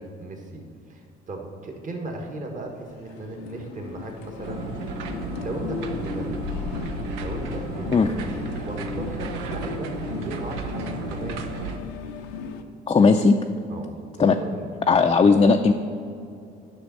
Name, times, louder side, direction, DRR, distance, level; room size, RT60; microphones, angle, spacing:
voice 1, 0.0-4.9 5.4-6.4 7.1-8.2 8.6-11.5 13.7-13.9 14.2-14.7, right 2 dB, 40° right, 2 dB, 1.6 m, -36 dB
sound 1, 2.6-12.6, left 6 dB, 85° left, 0.6 m, -36 dB
sound 2, 4.4-11.8, right 4 dB, 85° right, 0.7 m, -34 dB
voice 2, 12.9-13.4 14.2-14.4 14.9-15.7, left 4 dB, 25° left, 4 dB, 0.5 m, -17 dB
9.9 x 6.1 x 4.2 m, 2.5 s
supercardioid pair, 75°, 21 cm